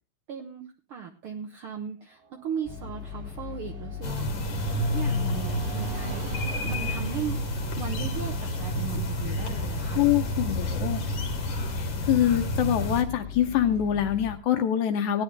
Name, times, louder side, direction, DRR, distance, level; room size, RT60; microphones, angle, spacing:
voice 1, 0.3-0.6 0.9-7.4 7.8-10.5, right 8 dB, 80° right, 4 dB, 1.2 m, -37 dB
sound 1, 2.1-7.6, right 6 dB, 60° right, 1.5 m, -45 dB
sound 2, 2.6-14.4, left 7 dB, ahead, 1.6 m, -39 dB
sound 3, 4.0-13.0, equal, 45° left, 1.9 m, -30 dB
voice 2, 10.0-11.0 11.7-15.2, left 11 dB, 75° left, 7 dB, 1.8 m, -25 dB
17.5 x 10.0 x 3.3 m, 0.29 s
omnidirectional pair, 3.9 m